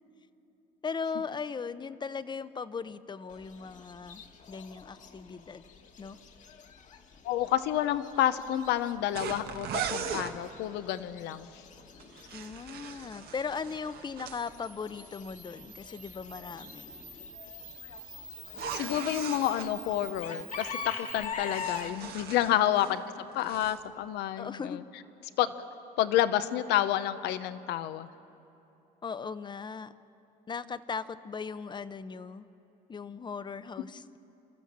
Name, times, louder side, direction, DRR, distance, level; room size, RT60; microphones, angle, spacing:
voice 1, 0.8-4.2 4.5-5.6 6.0-6.2 12.3-16.9 22.6-23.0 24.4-24.8 29.0-29.9 30.5-32.5 32.9-34.2, left 5 dB, 25° left, 14 dB, 0.7 m, -38 dB
Chicken rooster / Bird, 3.3-22.5, left 6 dB, 50° left, 1.5 m, -45 dB
voice 2, 7.2-11.5 18.7-23.0 23.3-24.8 25.4-25.5 26.0-28.1, left 12 dB, 85° left, 13 dB, 0.8 m, -29 dB
sound 1, 9.1-10.3 12.0-14.4 18.5-19.7 21.1-23.0 23.3-23.8, right 7 dB, 70° right, 1.3 m, -39 dB
Camera, 14.3-21.3, equal, ahead, 1.5 m, -46 dB
29.0 x 13.5 x 7.4 m, 3.0 s
cardioid pair, 110°, 17 cm